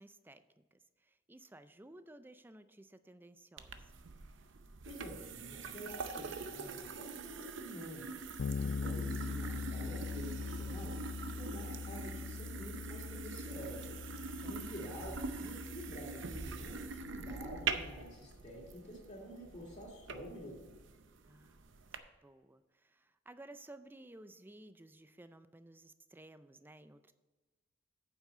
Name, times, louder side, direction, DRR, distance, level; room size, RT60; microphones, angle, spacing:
voice 1, 0.0-3.9 14.3-14.6 21.3-21.6 21.9-27.1, right 1 dB, 10° right, 12 dB, 0.4 m, -56 dB
sound 1, 3.6-22.0, right 4 dB, 70° right, 0.7 m, -44 dB
voice 2, 4.9-8.1 8.6-10.9 11.2-14.0 14.4-20.7, equal, 30° left, -6 dB, 2.4 m, -48 dB
Bass guitar, 8.4-18.0, left 5 dB, 85° left, 0.4 m, -42 dB
9.1 x 7.3 x 4.3 m, 1.3 s
head